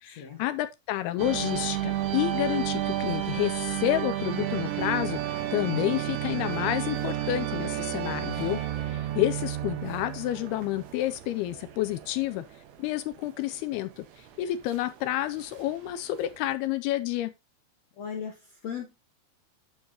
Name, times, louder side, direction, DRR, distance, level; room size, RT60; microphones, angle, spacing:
voice 1, 0.0-12.4 12.8-14.1 14.4-17.3, left 14 dB, 85° left, 2.3 m, -29 dB
sound 1, 1.2-16.5, right 12 dB, 85° right, 3.2 m, -32 dB
voice 2, 18.0-19.0, left 7 dB, 65° left, 1.7 m, -37 dB
9.4 x 6.7 x 2.8 m
omnidirectional pair, 4.9 m